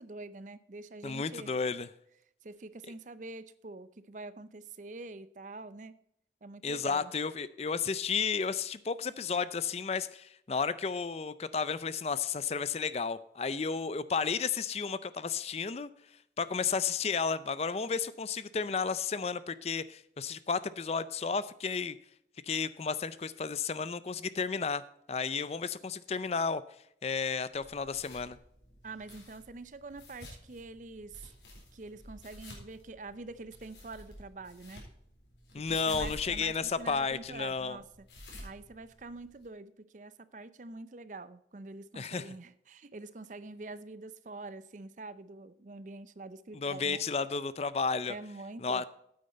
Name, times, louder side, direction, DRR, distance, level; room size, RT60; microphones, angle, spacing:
voice 1, 0.0-1.5 2.4-5.9 6.4-7.1 28.8-31.3 31.7-34.8 35.6-38.1 38.4-47.0 48.1-48.8, right 3 dB, 45° right, 15 dB, 0.5 m, -46 dB
voice 2, 1.0-1.9 6.6-15.9 16.4-22.0 22.4-24.8 25.1-26.6 27.0-28.4 35.5-37.8 42.0-42.3 46.5-48.1 48.6-48.8, left 5 dB, 35° left, 16 dB, 0.4 m, -32 dB
sound 1, 27.5-39.4, left 1 dB, 80° left, 4.0 m, -50 dB
9.4 x 8.7 x 4.2 m, 0.73 s
head